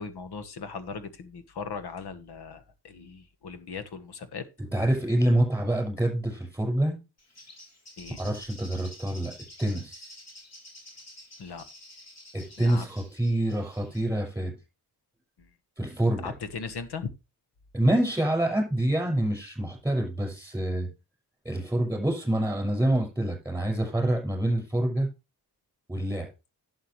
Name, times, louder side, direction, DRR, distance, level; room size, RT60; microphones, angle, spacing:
voice 1, 0.0-4.4 8.0-8.2 11.4-11.6 12.6-12.9 16.2-17.1, left 5 dB, 70° left, 1.4 m, -38 dB
voice 2, 4.7-7.0 8.2-10.1 12.3-14.6 15.8-16.3 17.7-20.9 21.4-25.1 25.9-26.3, right 1 dB, 5° right, 6.1 m, -26 dB
Bird, 7.2-14.1, left 1 dB, 40° left, 3.7 m, -49 dB
11.5 x 7.9 x 3.2 m
wide cardioid pair, 130°, 40 cm